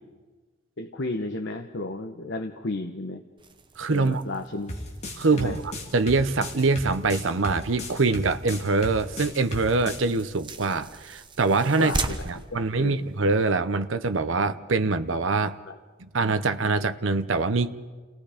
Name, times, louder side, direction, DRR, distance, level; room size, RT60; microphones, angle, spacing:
voice 1, 0.8-3.2 3.9-4.7 5.3-5.6 11.8-13.1 15.7-15.8, left 2 dB, 60° left, 4 dB, 1.0 m, -33 dB
sound 1, 3.4-13.5, right 3 dB, 25° right, 1.0 m, -40 dB
voice 2, 3.8-4.2 5.2-5.6 5.9-11.9 12.2-15.6 16.1-17.7, right 3 dB, 75° right, 10 dB, 0.8 m, -24 dB
sound 2, 4.7-10.1, left 1 dB, 35° left, 2.7 m, -35 dB
29.0 x 19.0 x 5.1 m, 1.4 s
head